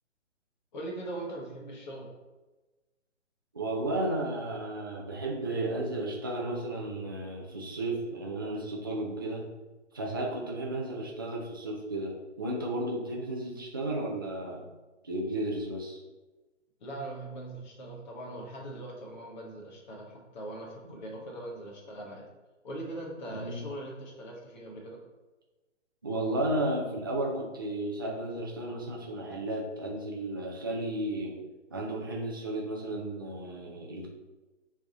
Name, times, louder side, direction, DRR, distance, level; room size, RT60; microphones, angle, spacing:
voice 1, 0.7-2.1 16.8-22.2 22.6-25.0, right 1 dB, 40° left, -2 dB, 1.2 m, -41 dB
voice 2, 3.5-9.4 9.9-14.6 15.0-16.0 20.8-21.0 23.3-23.6 26.0-31.4 31.7-34.1, right 1 dB, 20° right, -1 dB, 0.4 m, -33 dB
6.8 x 3.5 x 3.9 m, 1.2 s
figure-of-eight pair, 140°, 37 cm